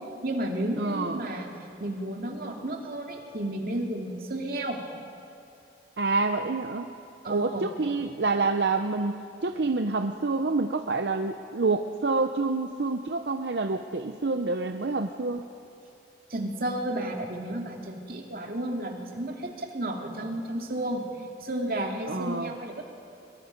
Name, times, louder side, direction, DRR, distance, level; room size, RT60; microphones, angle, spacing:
voice 1, 0.2-1.5 1.8-4.8 7.2-7.7 9.6-9.7 16.3-21.0 21.4-22.8, right 1 dB, 55° right, 1 dB, 2.4 m, -32 dB
voice 2, 0.8-1.2 6.0-6.9 7.3-15.5 22.1-22.5, right 3 dB, 75° right, 6 dB, 0.7 m, -27 dB
23.0 x 22.5 x 5.3 m, 2.6 s
head